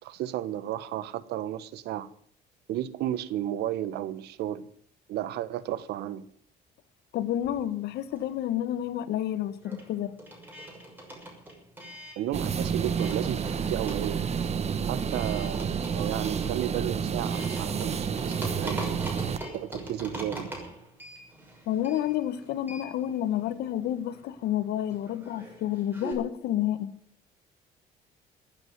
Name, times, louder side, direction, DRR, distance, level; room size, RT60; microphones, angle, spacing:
voice 1, 0.0-2.1 2.7-4.7 5.1-6.3 12.2-14.2 14.9-18.8 19.5-20.5, right 12 dB, 80° right, 1.2 m, -33 dB
voice 2, 7.1-10.1 21.7-26.9, left 11 dB, 75° left, 1.5 m, -30 dB
sound 1, 7.3-8.6 8.8-26.1, right 1 dB, 10° right, 6.2 m, -42 dB
sound 2, 12.3-19.4, right 6 dB, 40° right, 1.3 m, -30 dB
16.0 x 9.1 x 9.4 m
cardioid pair, 110°, 17 cm